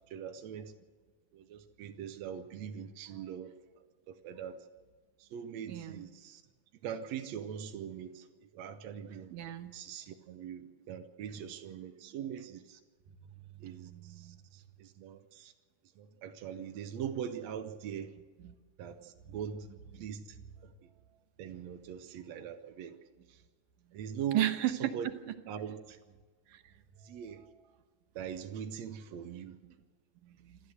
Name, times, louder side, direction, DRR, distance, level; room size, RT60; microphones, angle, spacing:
voice 1, 0.1-0.7 1.3-3.5 4.1-4.6 5.2-6.4 6.8-8.2 8.5-9.3 9.7-12.8 13.6-15.5 16.0-18.1 18.8-19.7 20.0-20.2 21.4-23.0 23.9-24.4 24.8-25.1 25.5-26.0 27.1-27.4 28.2-29.6, right 8 dB, 65° right, 5 dB, 1.9 m, -41 dB
voice 2, 5.7-6.1 9.3-9.7 11.4-11.5 13.5-14.4 18.4-18.5 19.3-19.4 19.9-20.1 20.4-20.6 24.3-24.9 26.5-26.7 29.6-29.7 30.2-30.6, right 13 dB, 90° right, 7 dB, 2.7 m, -35 dB
27.0 x 13.5 x 7.9 m, 1.5 s
omnidirectional pair, 3.6 m